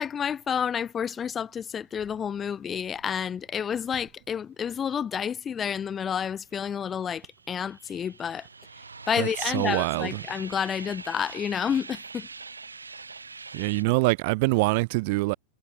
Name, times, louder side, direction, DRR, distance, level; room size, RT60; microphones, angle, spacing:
voice 1, 0.0-8.5 9.1-12.3, left 7 dB, 20° left, 1.7 m, -30 dB
sound 1, 6.7-13.8, right 4 dB, 75° right, 1.0 m, -43 dB
voice 2, 9.5-10.1 13.5-15.3, right 25 dB, 50° right, 0.5 m, -24 dB
figure-of-eight pair, 90°, 0 cm